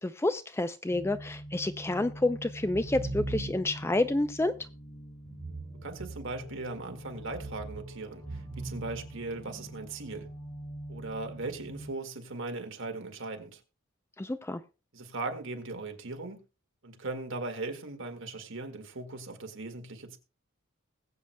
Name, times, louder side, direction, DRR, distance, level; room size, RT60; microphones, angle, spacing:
voice 1, 0.0-4.5 14.2-14.6, left 2 dB, 10° left, 0.4 m, -29 dB
sound 1, 0.9-11.9, right 1 dB, 30° left, 2.4 m, -45 dB
sound 2, 2.6-3.9 5.3-6.7 7.2-9.7, right 2 dB, 30° right, 0.6 m, -41 dB
voice 2, 5.7-10.3 10.9-13.6 14.9-16.4 16.8-20.2, right 3 dB, 60° right, 1.8 m, -38 dB
20.5 x 7.9 x 2.2 m
head